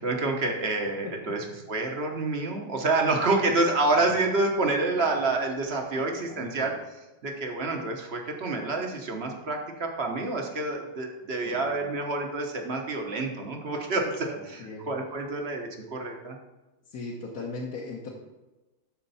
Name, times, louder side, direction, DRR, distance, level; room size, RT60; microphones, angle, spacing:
voice 1, 0.0-6.8 7.2-16.4, right 3 dB, 40° right, 2 dB, 1.0 m, -28 dB
voice 2, 5.9-6.7 11.4-11.9 14.4-14.8 16.9-18.1, left 3 dB, 55° left, -4 dB, 1.5 m, -39 dB
12.5 x 4.5 x 4.2 m, 1.1 s
omnidirectional pair, 2.1 m